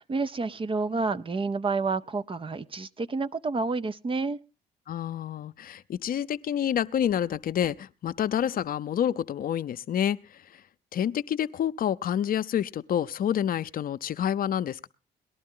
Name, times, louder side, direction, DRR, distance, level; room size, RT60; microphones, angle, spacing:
voice 1, 0.0-4.4, right 3 dB, 30° right, 0.6 m, -29 dB
voice 2, 4.9-10.2 10.9-14.9, left 9 dB, 60° left, 0.6 m, -28 dB
19.0 x 11.5 x 3.7 m
supercardioid pair, 65°, 17 cm